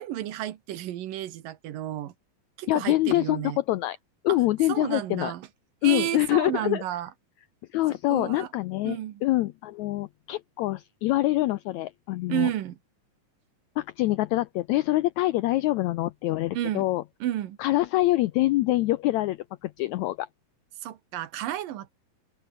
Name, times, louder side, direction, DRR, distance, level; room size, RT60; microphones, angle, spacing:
voice 1, 0.0-2.1 2.6-3.6 4.3-4.4 4.7-5.5 5.8-7.1 8.1-8.5 8.8-9.2 12.3-12.8 16.5-16.8 17.2-17.6 20.8-21.9, right 12 dB, 80° right, 3.1 m, -31 dB
voice 2, 2.7-4.0 4.2-5.3 5.8-6.8 7.7-12.5 13.8-17.0 17.6-20.3, left 17 dB, 90° left, 1.6 m, -25 dB
omnidirectional pair, 4.0 m